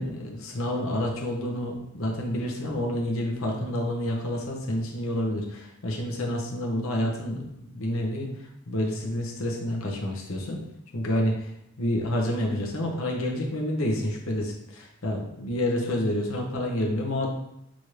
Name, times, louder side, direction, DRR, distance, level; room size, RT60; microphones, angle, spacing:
voice 1, 0.0-8.3 8.7-10.6 10.9-11.5 11.8-17.3, left 1 dB, 70° left, 0 dB, 0.8 m, -28 dB
6.1 x 2.7 x 3.2 m, 0.80 s
head